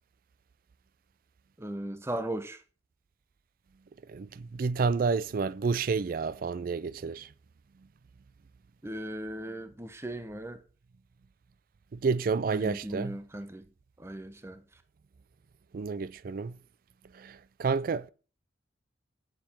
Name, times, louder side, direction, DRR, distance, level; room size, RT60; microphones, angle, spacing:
voice 1, 1.6-2.6 8.8-10.6 12.5-13.7 14.0-14.6, right 1 dB, 15° right, 0.6 m, -37 dB
voice 2, 4.1-7.3 11.9-13.2 15.7-16.6 17.1-18.1, right 4 dB, 50° right, 0.4 m, -30 dB
7.5 x 7.2 x 4.3 m
head